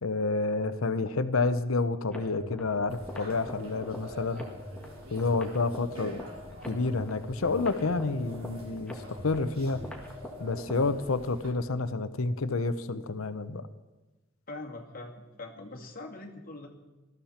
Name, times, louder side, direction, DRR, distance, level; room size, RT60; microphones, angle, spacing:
voice 1, 0.0-4.4 5.1-6.2 6.7-9.8 10.4-13.6, left 3 dB, 80° left, 12 dB, 0.8 m, -29 dB
sound 1, 2.1-11.1, left 1 dB, 5° left, 1.9 m, -43 dB
sound 2, 2.9-11.5, equal, 85° right, 3.1 m, -48 dB
voice 2, 14.5-16.7, left 2 dB, 45° left, 1 dB, 2.2 m, -42 dB
19.0 x 13.5 x 4.4 m, 1.1 s
head